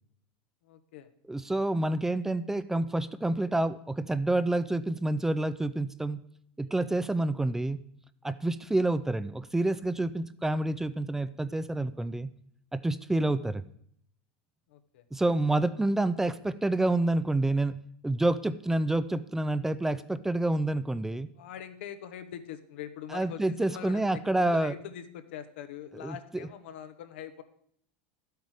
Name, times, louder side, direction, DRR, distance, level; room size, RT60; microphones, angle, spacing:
voice 1, 0.6-1.1 8.8-8.9 14.7-15.0 21.4-27.4, left 10 dB, 85° left, 10 dB, 1.0 m, -43 dB
voice 2, 1.3-6.2 6.6-7.8 8.2-12.3 12.7-13.6 15.1-17.8 18.0-21.3 23.1-24.7 25.9-26.5, right 2 dB, 5° right, 14 dB, 0.4 m, -28 dB
12.0 x 8.1 x 4.9 m, 0.68 s
supercardioid pair, 130°, 6 cm